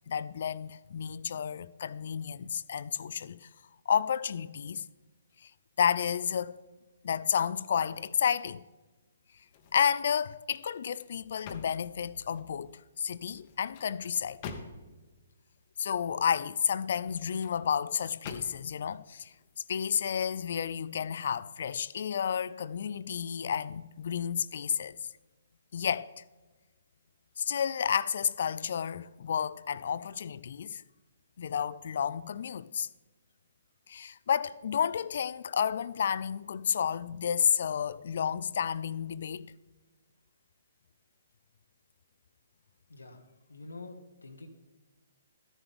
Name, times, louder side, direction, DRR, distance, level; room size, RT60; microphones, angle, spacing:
voice 1, 0.1-3.5 3.9-4.9 5.4-5.5 5.8-6.6 7.0-8.6 9.7-14.4 15.8-19.3 19.7-25.0 25.7-26.2 27.4-30.8 31.4-32.9 33.9-39.5, left 8 dB, 55° left, 0.4 m, -31 dB
sound 1, 9.5-10.2 10.6-12.6 13.3-15.1 16.8-17.6 18.2-18.8 19.3-19.5, left 5 dB, 35° left, 1.0 m, -47 dB
voice 2, 42.9-44.5, left 3 dB, 80° left, 1.1 m, -47 dB
13.0 x 10.0 x 3.5 m
figure-of-eight pair, 130°, 0 cm